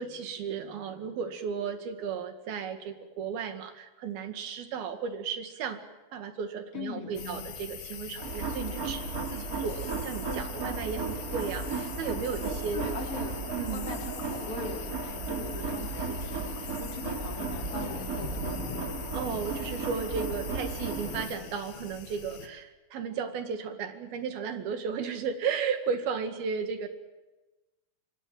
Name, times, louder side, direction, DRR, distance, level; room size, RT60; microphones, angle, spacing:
voice 1, 0.0-5.8 6.1-12.8 13.5-13.9 19.1-26.9, right 6 dB, 85° right, 7 dB, 4.0 m, -34 dB
voice 2, 6.7-7.4 12.7-13.4 13.7-18.7, left 5 dB, 40° left, 3 dB, 4.1 m, -41 dB
sound 1, 7.2-22.5, left 8 dB, 85° left, 3.9 m, -42 dB
sound 2, 8.2-21.2, right 4 dB, 25° right, 2.5 m, -35 dB
26.5 x 24.0 x 7.7 m, 1.1 s
omnidirectional pair, 4.2 m